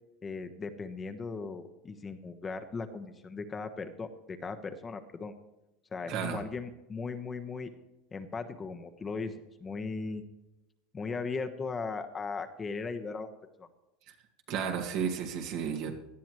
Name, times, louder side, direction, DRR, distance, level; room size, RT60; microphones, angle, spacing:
voice 1, 0.2-5.3 5.9-7.7 8.1-10.2 10.9-13.3 13.6-13.7, left 4 dB, 25° left, 7 dB, 1.3 m, -38 dB
voice 2, 6.1-6.4 14.5-16.0, right 7 dB, 65° right, 3 dB, 2.2 m, -33 dB
18.0 x 12.0 x 3.2 m, 0.99 s
supercardioid pair, 100°, 0 cm